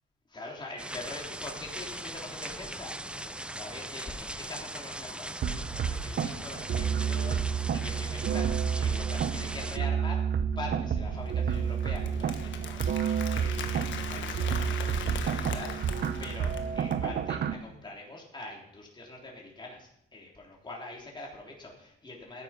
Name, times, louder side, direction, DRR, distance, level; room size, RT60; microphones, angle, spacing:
voice 1, 0.3-10.2 10.5-15.9 16.2-22.4, left 2 dB, 25° left, -2 dB, 3.4 m, -44 dB
sound 1, 0.8-9.8, right 1 dB, 5° right, 0.6 m, -40 dB
sound 2, 5.4-17.5, right 7 dB, 55° right, 0.8 m, -30 dB
Applause, 11.2-17.0, left 7 dB, 70° left, 1.4 m, -40 dB
13.0 x 9.6 x 5.9 m, 0.76 s
cardioid pair, 90°, 20 cm